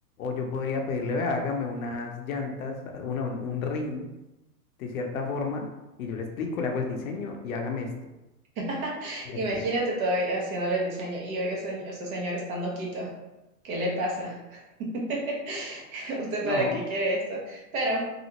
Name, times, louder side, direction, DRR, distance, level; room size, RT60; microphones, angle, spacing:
voice 1, 0.2-4.1 4.8-5.7 6.0-7.9 9.3-9.6 16.4-16.8, left 4 dB, 60° left, 3 dB, 0.6 m, -31 dB
voice 2, 8.6-13.1 13.6-18.1, right 1 dB, 60° right, -2 dB, 1.1 m, -30 dB
3.1 x 2.5 x 2.8 m, 1.0 s
supercardioid pair, 155°, 48 cm